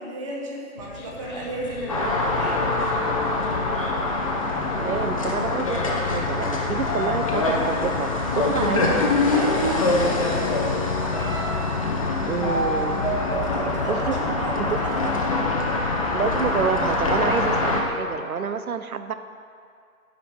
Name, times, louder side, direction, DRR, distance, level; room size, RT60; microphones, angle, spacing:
voice 1, 0.0-2.7 9.1-10.3 13.3-15.4, right 1 dB, 20° right, -2 dB, 1.1 m, -33 dB
sound 1, 0.8-18.2, left 7 dB, 80° left, 0.7 m, -33 dB
sound 2, 1.9-17.8, left 2 dB, 25° left, 0.6 m, -25 dB
voice 2, 4.8-9.0 12.3-13.0 13.8-14.2 14.6-14.8 16.1-19.1, right 6 dB, 80° right, 10 dB, 0.8 m, -28 dB
sound 3, 6.8-8.3 9.5-9.6 10.0-10.6 11.1-17.0 17.7-18.5, equal, ahead, 1.5 m, -33 dB
10.5 x 5.1 x 5.5 m, 2.3 s
hypercardioid pair, 155°, 43 cm